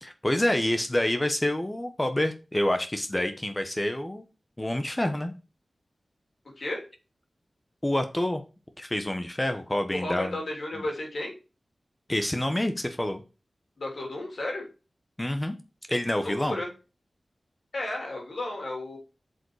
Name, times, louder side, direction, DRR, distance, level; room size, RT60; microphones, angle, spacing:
voice 1, 0.0-4.2 4.6-5.3 7.8-8.4 8.8-10.4 12.1-13.2 15.2-15.6 15.9-16.6, left 1 dB, 20° left, 7 dB, 1.1 m, -27 dB
voice 2, 9.9-11.3 13.8-14.6 16.2-16.7 17.7-19.0, left 2 dB, 70° left, 0 dB, 3.3 m, -33 dB
7.5 x 5.5 x 4.8 m, 0.31 s
cardioid pair, 55°, 0 cm